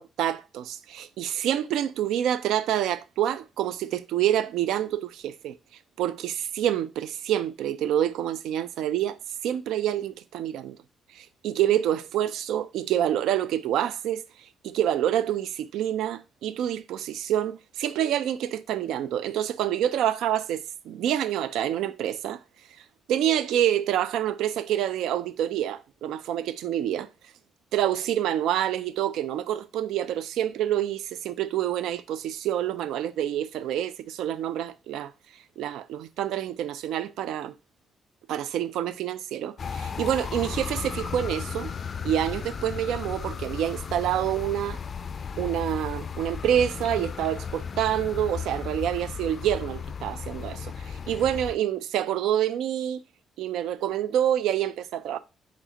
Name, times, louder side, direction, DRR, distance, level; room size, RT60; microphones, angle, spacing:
voice 1, 0.0-5.6 6.0-9.2 9.4-10.8 11.1-22.4 23.1-27.1 27.7-35.1 35.6-37.5 38.3-41.7 42.0-44.8 45.4-53.0 53.4-55.2, right 11 dB, 85° right, 0.3 m, -27 dB
sound 1, 39.6-51.6, left 6 dB, 45° left, 0.3 m, -35 dB
4.7 x 3.4 x 2.9 m
cardioid pair, 90°, 0 cm